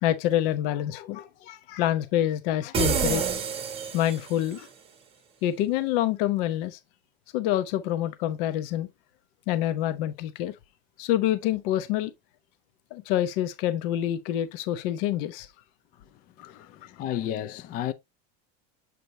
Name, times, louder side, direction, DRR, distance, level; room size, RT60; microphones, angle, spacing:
voice 1, 0.0-3.3 3.9-4.7 5.4-6.8 7.3-8.9 9.5-10.5 11.0-12.1 12.9-15.5 16.4-16.5, left 12 dB, 65° left, 0.9 m, -27 dB
sound 1, 2.7-4.6, right 7 dB, 20° right, 0.9 m, -28 dB
voice 2, 16.4-17.9, left 11 dB, 30° left, 0.4 m, -32 dB
7.7 x 5.0 x 2.6 m
cardioid pair, 180°, 30 cm